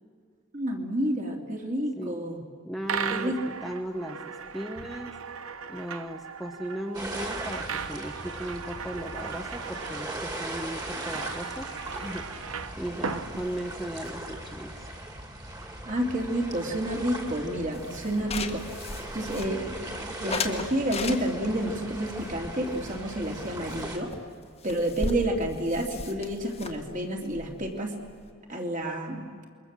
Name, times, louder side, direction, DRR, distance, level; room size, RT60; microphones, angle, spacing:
voice 1, 0.5-2.4 3.1-3.3 15.9-18.8 19.1-24.1 24.6-28.0 28.5-29.3, right 1 dB, 35° right, 2 dB, 2.9 m, -30 dB
voice 2, 2.6-3.3 3.6-5.1 5.7-12.4 12.8-14.7, equal, ahead, 1 dB, 1.1 m, -37 dB
sound 1, 2.8-14.1, right 6 dB, 85° right, 1.1 m, -37 dB
sound 2, 6.9-24.0, right 1 dB, 20° right, 2.6 m, -39 dB
sound 3, 17.7-19.8 20.3-21.6 22.2-23.4 23.7-23.8 24.1-24.2 24.4-28.3, left 3 dB, 30° left, 1.6 m, -36 dB
28.0 x 23.0 x 7.5 m, 2.1 s
head